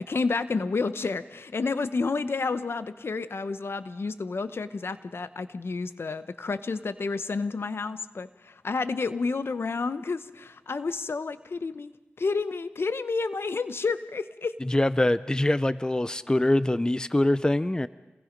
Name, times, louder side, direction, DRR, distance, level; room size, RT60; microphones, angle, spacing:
voice 1, 0.0-11.9 12.2-14.5, left 4 dB, 70° left, 12 dB, 0.9 m, -30 dB
voice 2, 14.7-17.9, left 1 dB, 20° left, 15 dB, 0.6 m, -24 dB
28.0 x 19.0 x 5.2 m, 1.1 s
cardioid pair, 45°, 4 cm